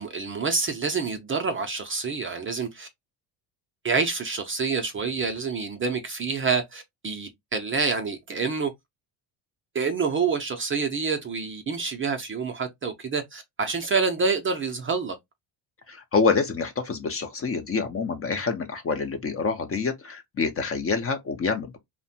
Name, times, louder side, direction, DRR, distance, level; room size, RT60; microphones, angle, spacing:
voice 1, 0.0-2.9 3.8-8.7 9.7-15.2, right 5 dB, 25° right, 0.4 m, -27 dB
voice 2, 15.9-21.8, left 4 dB, 30° left, 0.5 m, -27 dB
2.6 x 2.1 x 2.6 m
supercardioid pair, 85°, 49 cm